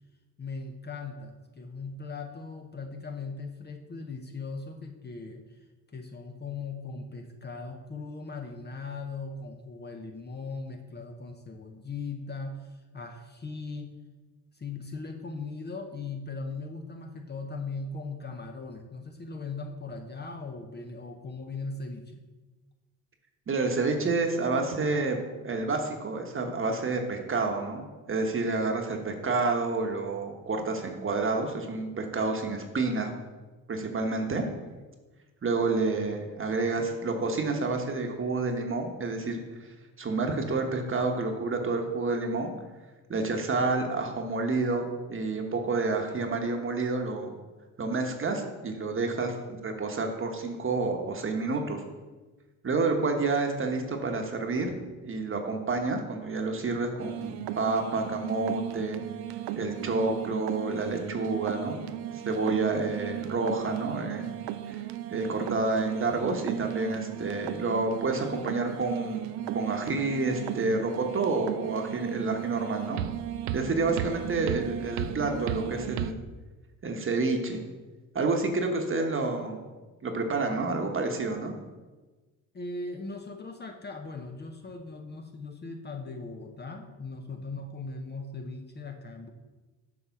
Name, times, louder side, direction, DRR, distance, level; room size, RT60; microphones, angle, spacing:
voice 1, 0.4-5.6 5.9-13.9 14.5-22.2 82.5-89.3, left 3 dB, 25° left, 4 dB, 0.7 m, -39 dB
voice 2, 23.5-33.2 33.7-34.4 35.4-42.5 43.1-47.3 47.8-49.4 49.6-51.8 52.6-54.7 55.0-59.0 59.5-61.8 62.1-64.4 64.6-73.0 73.5-76.2 76.8-77.6 78.1-79.6 80.0-81.5, right 3 dB, 35° right, 3 dB, 1.2 m, -29 dB
sound 1, 57.0-76.1, right 12 dB, 75° right, 0.5 m, -36 dB
7.0 x 3.4 x 5.8 m, 1.3 s
supercardioid pair, 70°, 38 cm